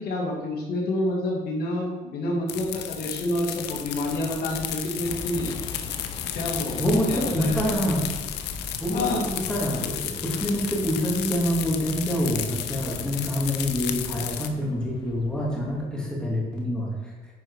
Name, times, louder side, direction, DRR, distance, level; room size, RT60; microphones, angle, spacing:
voice 1, 0.0-5.5 6.3-6.8 7.1-7.8 8.9-9.2, left 1 dB, 65° left, -1 dB, 2.3 m, -28 dB
sound 1, 2.5-14.5, left 10 dB, 80° left, 0.8 m, -33 dB
sound 2, 5.0-15.9, left 4 dB, 25° left, 0.7 m, -42 dB
voice 2, 6.8-8.0 8.8-17.1, equal, 5° left, -4 dB, 2.7 m, -26 dB
9.7 x 4.9 x 5.0 m, 1.2 s
cardioid pair, 110°, 17 cm